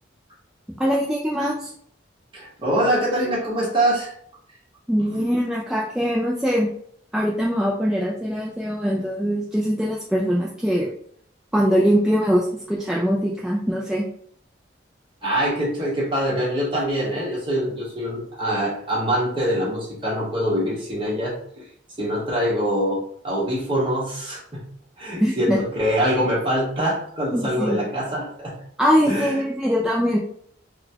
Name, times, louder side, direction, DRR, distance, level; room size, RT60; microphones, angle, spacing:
voice 1, 0.8-1.7 4.9-6.7 7.1-10.9 11.5-14.1 25.2-25.6 27.3-27.9 28.8-30.2, equal, 5° right, -3 dB, 0.3 m, -22 dB
voice 2, 2.3-4.1 5.1-5.3 15.2-21.6 22.0-24.6 25.0-28.5 29.1-29.4, equal, 30° right, -5 dB, 1.2 m, -24 dB
4.0 x 2.2 x 2.8 m, 0.65 s
head